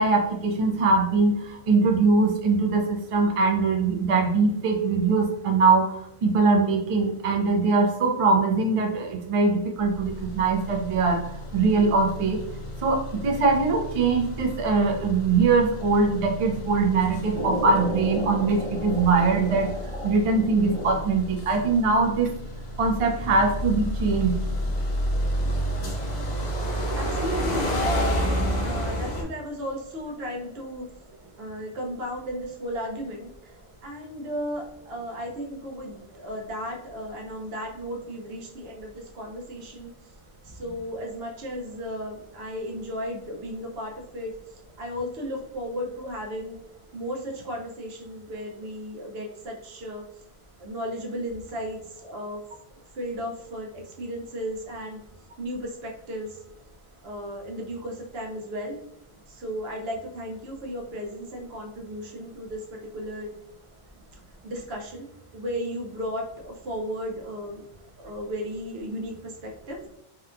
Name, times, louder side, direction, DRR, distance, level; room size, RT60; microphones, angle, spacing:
voice 1, 0.0-12.4 12.8-19.7 20.0-22.3 22.8-24.4, right 4 dB, 55° right, 2 dB, 0.4 m, -22 dB
sound 1, 9.8-29.2, equal, 55° left, 0.6 m, -31 dB
sound 2, 17.3-21.4, equal, 35° right, 0.9 m, -34 dB
voice 2, 27.0-28.3 28.6-30.9 31.4-33.5 33.8-39.9 40.4-44.3 44.8-46.6 46.9-50.0 50.6-52.4 52.9-55.0 55.4-56.4 57.0-58.8 59.3-63.3 64.4-65.1 65.3-67.6 68.0-69.8, equal, 80° right, 0 dB, 0.9 m, -34 dB
2.8 x 2.2 x 2.4 m, 0.78 s
omnidirectional pair, 1.0 m